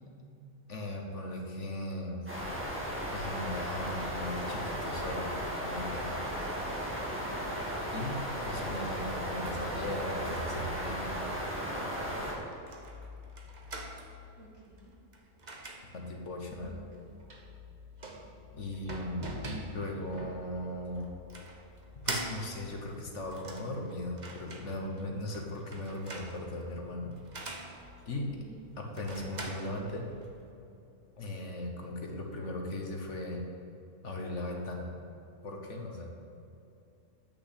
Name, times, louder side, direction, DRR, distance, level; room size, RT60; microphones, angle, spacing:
voice 1, 0.7-2.4 3.1-6.2 6.5-6.6 7.9-11.1 15.9-16.8 18.5-21.1 21.9-27.2 28.1-28.4 28.8-30.1 31.2-33.4 34.0-35.0 35.4-36.1, left 1 dB, 55° left, 1 dB, 1.5 m, -38 dB
sound 1, 2.3-12.3, equal, 10° right, 1.9 m, -35 dB
voice 2, 7.0-7.3 14.4-14.9 16.5-17.0 28.4-28.6, right 1 dB, 65° right, -5 dB, 2.9 m, -53 dB
sound 2, 12.5-30.5, right 1 dB, 35° right, 1.0 m, -45 dB
8.4 x 6.6 x 8.3 m, 2.8 s
omnidirectional pair, 1.5 m